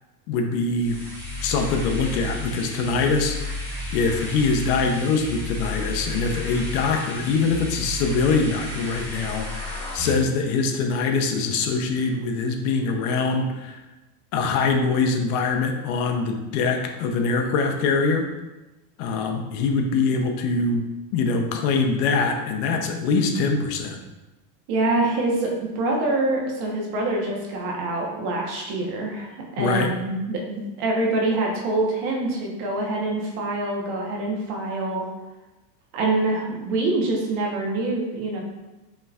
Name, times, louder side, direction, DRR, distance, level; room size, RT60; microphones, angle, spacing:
voice 1, 0.3-1.0 1.4-13.8 14.3-18.3 19.0-20.8 21.1-24.0 29.6-29.9, left 4 dB, 65° left, 4 dB, 0.8 m, -23 dB
sound 1, 0.7-10.1, left 1 dB, 5° left, 1.3 m, -32 dB
voice 2, 24.7-35.0 35.9-38.4, right 2 dB, 55° right, -1 dB, 1.2 m, -25 dB
5.5 x 3.2 x 2.4 m, 1.1 s
supercardioid pair, 135°, 48 cm